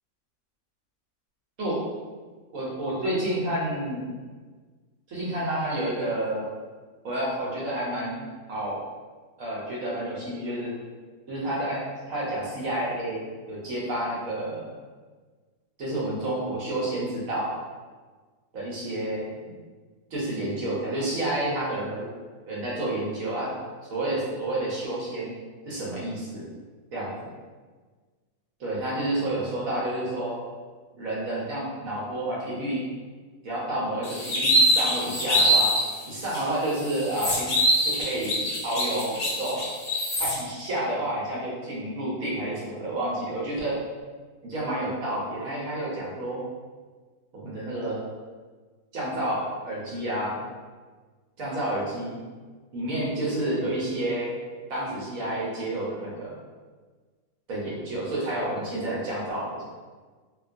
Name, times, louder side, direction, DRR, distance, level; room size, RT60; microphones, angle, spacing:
voice 1, 2.5-4.1 5.1-6.5 7.0-8.8 9.4-10.7 11.3-11.8 12.1-14.7 15.8-17.6 18.5-19.3 20.1-22.1 22.5-23.5 23.9-25.3 25.7-26.5 26.9-27.3 28.6-30.4 30.9-32.8 33.4-35.7 36.1-37.5 37.8-39.7 40.2-43.8 44.4-46.4 47.3-48.0 48.9-50.4 51.4-52.2 52.7-54.3 54.7-56.4 57.5-59.6, right 1 dB, 65° right, -5 dB, 1.1 m, -30 dB
sound 1, 34.0-35.9 36.3-36.4 36.8-40.3, equal, 50° left, 0.5 m, -23 dB
2.8 x 2.2 x 2.4 m, 1.4 s
omnidirectional pair, 1.6 m